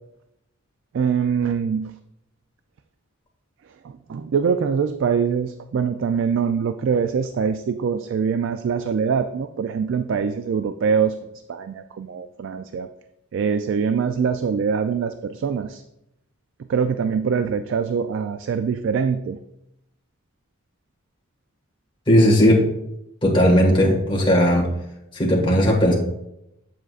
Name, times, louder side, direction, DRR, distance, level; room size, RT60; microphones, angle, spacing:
voice 1, 0.9-2.0 3.8-11.2 11.5-12.9 13.3-15.8 16.7-19.4, right 6 dB, 60° right, 10 dB, 0.3 m, -23 dB
voice 2, 22.1-22.6 23.2-24.7 25.1-25.9, equal, 25° left, -1 dB, 1.6 m, -16 dB
7.8 x 7.4 x 2.4 m, 0.84 s
head